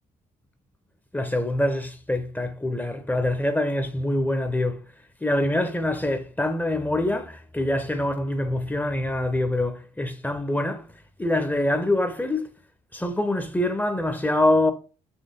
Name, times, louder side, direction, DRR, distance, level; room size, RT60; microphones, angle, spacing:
voice 1, 1.1-4.9 5.2-10.9 11.2-12.5 12.9-14.7, left 1 dB, 10° left, 0.8 m, -25 dB
4.5 x 3.1 x 3.6 m
figure-of-eight pair, 45°, 19 cm